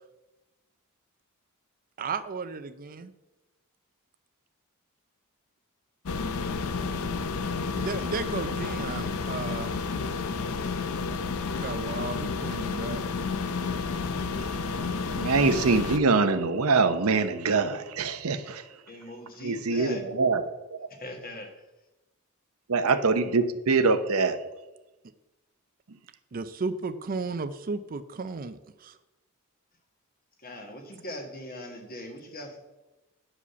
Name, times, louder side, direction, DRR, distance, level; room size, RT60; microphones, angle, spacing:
voice 1, 2.0-3.1 7.8-9.7 11.6-13.0 26.3-29.0, right 4 dB, 40° right, 11 dB, 0.5 m, -34 dB
sound 1, 6.1-16.0, left 4 dB, 70° left, 0.6 m, -31 dB
voice 2, 14.9-18.8 19.4-20.9 22.7-24.4 25.9-26.0, right 4 dB, 70° right, 10 dB, 0.7 m, -24 dB
voice 3, 18.9-20.0 20.9-21.7 30.4-32.6, left 1 dB, 45° left, 3 dB, 1.6 m, -40 dB
9.8 x 5.0 x 6.8 m, 1.0 s
head